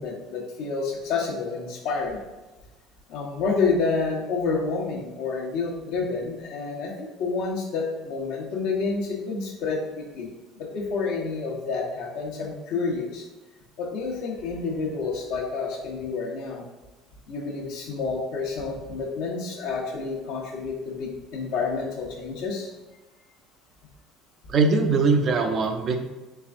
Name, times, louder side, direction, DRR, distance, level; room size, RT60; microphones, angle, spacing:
voice 1, 0.0-2.2 3.1-13.3 13.8-16.6 17.3-22.7, left 4 dB, 75° left, -2 dB, 1.0 m, -29 dB
voice 2, 24.5-26.0, right 4 dB, 45° right, 5 dB, 0.5 m, -21 dB
4.5 x 3.4 x 2.5 m, 1.1 s
supercardioid pair, 95°, 0 cm